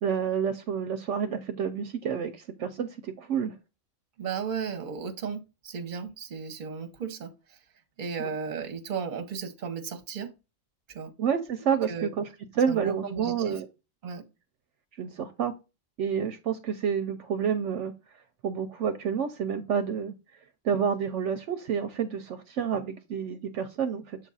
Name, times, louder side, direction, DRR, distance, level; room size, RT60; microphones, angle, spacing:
voice 1, 0.0-3.5 11.2-12.3 12.5-13.7 15.0-15.5 16.0-17.9 18.4-20.1 20.6-24.2, right 7 dB, 70° right, 0.9 m, -29 dB
voice 2, 4.2-7.3 8.0-10.3 10.9-11.1 11.6-12.1 12.7-13.6 14.0-14.2, right 6 dB, 40° right, 0.9 m, -35 dB
7.2 x 2.4 x 5.4 m
omnidirectional pair, 1.3 m